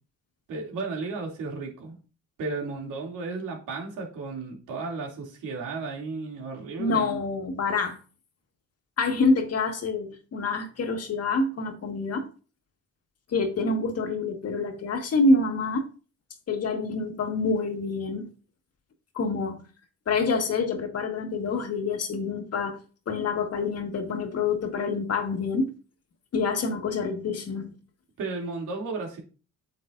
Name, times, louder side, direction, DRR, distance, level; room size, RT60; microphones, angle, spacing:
voice 1, 0.5-2.0 2.4-7.1 28.2-29.2, right 3 dB, 90° right, 2.9 m, -34 dB
voice 2, 6.8-8.0 9.0-12.3 13.3-15.9 16.5-18.3 19.2-19.6 20.1-22.8 23.1-25.7 26.3-27.8, left 3 dB, 55° left, 1.8 m, -26 dB
8.6 x 7.3 x 2.6 m
cardioid pair, 90°, 30 cm